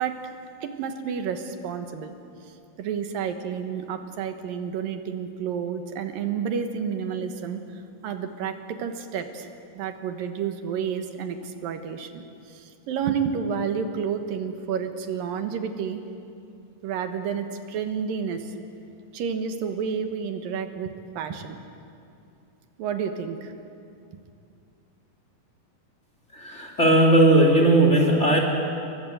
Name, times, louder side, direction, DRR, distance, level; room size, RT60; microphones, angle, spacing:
voice 1, 0.0-2.2 2.5-9.5 9.8-16.0 16.8-18.5 19.1-21.6 22.8-23.5, right 7 dB, 80° right, 7 dB, 3.0 m, -30 dB
voice 2, 26.3-28.4, right 1 dB, 20° left, 1 dB, 3.0 m, -17 dB
28.5 x 22.5 x 8.0 m, 2.6 s
omnidirectional pair, 4.0 m